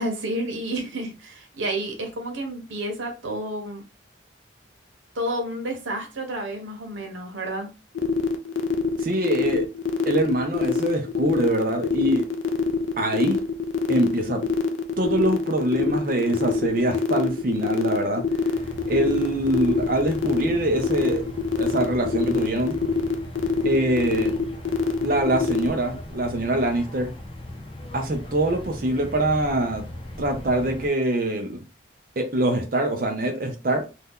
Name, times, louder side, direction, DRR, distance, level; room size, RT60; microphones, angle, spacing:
voice 1, 0.0-3.8 5.1-7.7, right 1 dB, 85° right, 0.9 m, -30 dB
sound 1, 7.9-25.7, left 5 dB, 80° left, 0.4 m, -24 dB
voice 2, 9.0-9.7 10.1-12.2 13.0-13.4 13.9-14.4 15.0-18.2 18.9-21.2 21.6-22.7 23.6-24.4 25.0-27.1 27.9-29.9 30.2-31.6 32.2-33.9, right 1 dB, 45° right, 0.6 m, -24 dB
sound 2, 18.5-30.9, left 1 dB, 30° left, 0.4 m, -38 dB
2.7 x 2.2 x 3.5 m
head